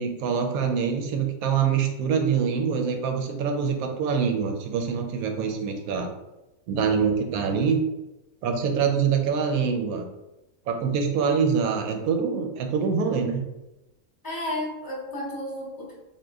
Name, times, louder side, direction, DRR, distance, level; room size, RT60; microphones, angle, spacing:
voice 1, 0.0-6.1 6.7-7.8 8.4-10.1 10.7-13.4, right 6 dB, 75° right, 4 dB, 1.0 m, -25 dB
voice 2, 14.2-15.9, left 1 dB, 20° left, -4 dB, 0.7 m, -32 dB
2.8 x 2.4 x 3.5 m, 0.96 s
omnidirectional pair, 1.6 m